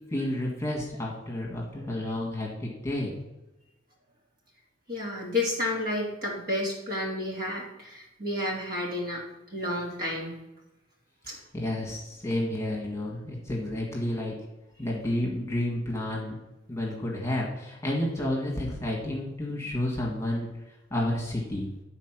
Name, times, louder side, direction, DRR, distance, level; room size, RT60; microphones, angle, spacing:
voice 1, 0.1-3.2 11.2-14.4 14.8-16.4 16.7-20.5 20.9-21.7, left 1 dB, 15° left, -3 dB, 1.7 m, -31 dB
voice 2, 4.9-9.2 9.5-10.4 11.3-11.4, left 1 dB, 50° right, -3 dB, 2.4 m, -31 dB
9.7 x 4.2 x 6.0 m, 0.97 s
head